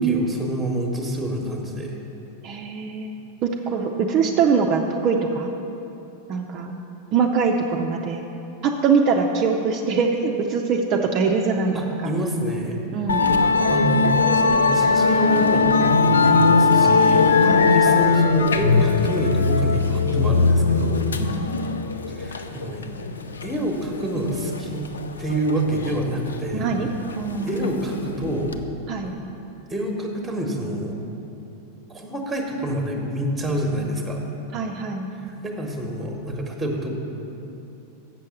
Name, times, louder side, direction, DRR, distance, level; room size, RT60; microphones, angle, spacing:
voice 1, 0.0-1.9 11.7-12.8 13.7-17.4 17.7-21.1 22.1-22.9 23.4-24.9 25.2-26.7 27.4-28.5 29.7-31.0 31.9-34.2 35.2-36.9, right 1 dB, 5° right, 1 dB, 1.1 m, -27 dB
voice 2, 2.4-3.1 3.4-5.5 6.3-6.7 7.1-8.2 8.6-11.8 12.0-12.1 12.9-13.3 17.4-17.8 21.2-21.5 26.5-26.9 27.2-27.7 28.9-29.1 34.5-35.1, right 5 dB, 35° right, 2 dB, 0.5 m, -23 dB
Musical instrument, 13.1-28.6, left 4 dB, 70° left, 0.4 m, -20 dB
7.5 x 6.5 x 7.1 m, 2.9 s
figure-of-eight pair, 90°, 0 cm